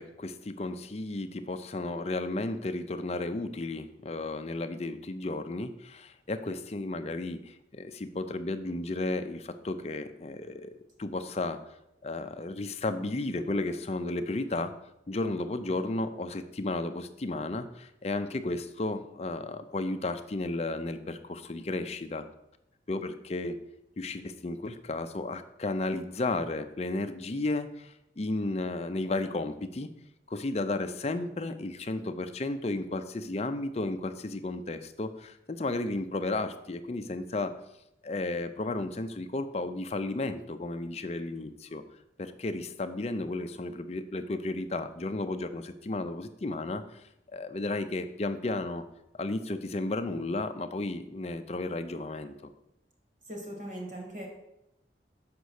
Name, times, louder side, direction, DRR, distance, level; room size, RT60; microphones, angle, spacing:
voice 1, 0.0-11.6 12.0-14.7 15.1-22.2 22.9-23.6 24.0-29.9 30.3-37.5 38.0-41.8 42.2-47.0 47.3-48.8 49.2-52.5, left 2 dB, 35° left, 9 dB, 0.5 m, -33 dB
voice 2, 53.3-54.3, right 1 dB, 45° right, 1 dB, 2.0 m, -39 dB
6.8 x 5.2 x 6.4 m, 0.84 s
head